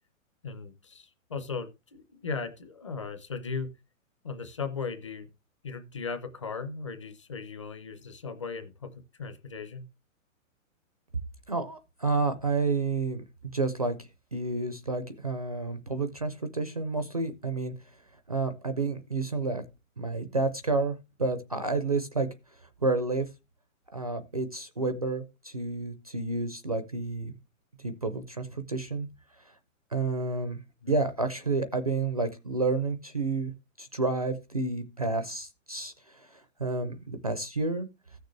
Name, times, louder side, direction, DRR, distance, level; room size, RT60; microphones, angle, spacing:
voice 1, 0.4-3.7 4.2-5.3 5.6-9.9 30.8-30.9, left 5 dB, 25° left, 8 dB, 0.6 m, -37 dB
voice 2, 11.5-17.7 18.3-19.6 20.0-22.3 22.8-23.3 23.9-27.3 27.8-29.1 29.9-30.6 30.9-33.5 33.8-37.9, right 3 dB, 30° right, 10 dB, 0.4 m, -30 dB
15.0 x 6.6 x 3.2 m, 0.26 s
hypercardioid pair, 180°, 40 cm